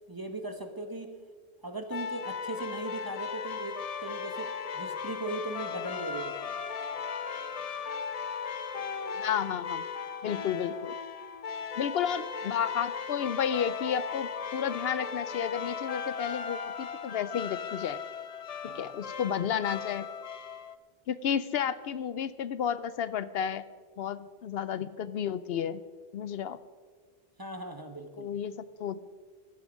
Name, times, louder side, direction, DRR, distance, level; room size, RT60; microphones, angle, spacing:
voice 1, 0.1-1.1 1.6-4.5 4.7-6.4 18.7-18.9 27.4-28.3, right 2 dB, 20° right, 7 dB, 1.1 m, -38 dB
sound 1, 1.9-20.8, left 6 dB, 45° left, 0.6 m, -37 dB
voice 2, 9.0-9.8 10.2-10.9 11.8-18.0 18.6-20.1 21.1-23.6 24.0-25.8 26.1-26.6 28.2-29.0, left 8 dB, 75° left, 15 dB, 0.8 m, -32 dB
15.5 x 12.0 x 5.2 m, 1.5 s
omnidirectional pair, 1.0 m